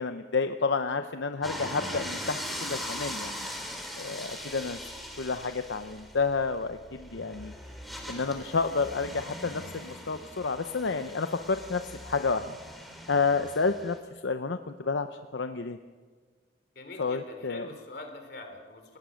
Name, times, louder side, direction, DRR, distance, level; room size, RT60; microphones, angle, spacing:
voice 1, 0.0-3.5 4.0-4.8 5.2-7.5 8.1-12.6 13.1-14.0 14.2-15.1 15.3-15.8 17.0-17.7, left 4 dB, 80° left, 8 dB, 0.8 m, -30 dB
sound 1, 1.4-14.0, equal, ahead, 3.3 m, -40 dB
voice 2, 16.8-19.0, left 2 dB, 55° left, 5 dB, 3.6 m, -44 dB
29.0 x 18.5 x 6.4 m, 1.5 s
head